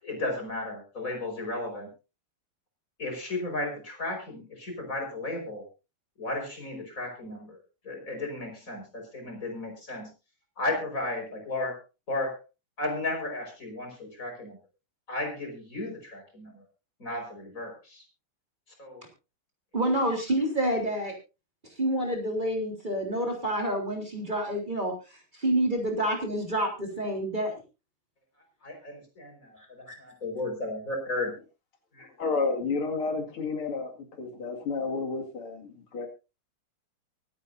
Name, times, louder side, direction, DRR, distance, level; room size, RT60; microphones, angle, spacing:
voice 1, 0.0-1.9 3.0-5.7 6.2-7.6 7.8-10.1 10.6-11.8 12.1-12.4 12.8-14.6 15.1-16.6 17.0-18.0 18.8-19.1 28.6-31.4 31.9-32.1, left 2 dB, 40° left, 2 dB, 5.5 m, -34 dB
voice 2, 19.7-21.1 21.8-27.6 29.6-30.0, right 1 dB, 20° right, 1 dB, 3.8 m, -28 dB
voice 3, 32.2-33.9 34.2-36.1, left 4 dB, 90° left, 2 dB, 3.1 m, -30 dB
24.0 x 9.4 x 2.7 m, 0.29 s
omnidirectional pair, 2.3 m